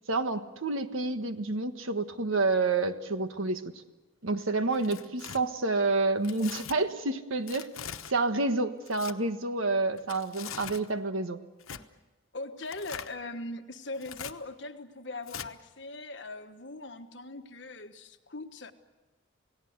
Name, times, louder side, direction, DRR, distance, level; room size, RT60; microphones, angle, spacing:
voice 1, 0.1-3.6 4.2-7.7 8.1-11.4, right 3 dB, 80° right, 8 dB, 1.5 m, -29 dB
Tearing, 4.7-5.4 6.2-6.8 7.5-8.1 8.8-9.1 10.0-10.9 11.6-11.8 12.6-13.1 13.9-14.3 15.3-15.5, left 8 dB, 90° left, 1.1 m, -41 dB
voice 2, 12.3-18.7, left 2 dB, 60° left, 7 dB, 1.4 m, -40 dB
29.0 x 18.0 x 8.1 m, 1.2 s
head